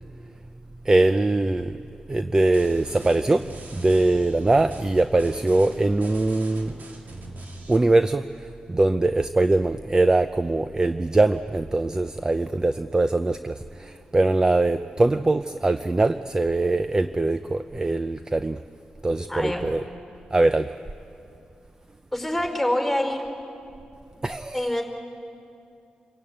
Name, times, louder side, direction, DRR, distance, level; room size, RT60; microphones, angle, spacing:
voice 1, 0.9-1.7 2.1-3.4 3.8-6.7 7.7-8.2 8.7-13.5 14.1-18.6 19.0-19.8 20.3-20.7 24.2-24.7, right 2 dB, 25° right, 10 dB, 0.5 m, -22 dB
sound 1, 2.4-7.8, right 2 dB, 75° right, 2.5 m, -43 dB
voice 2, 19.3-19.6 22.1-23.2 24.5-24.8, left 1 dB, ahead, 3 dB, 4.8 m, -25 dB
27.0 x 16.0 x 8.8 m, 2.5 s
cardioid pair, 90°, 3 cm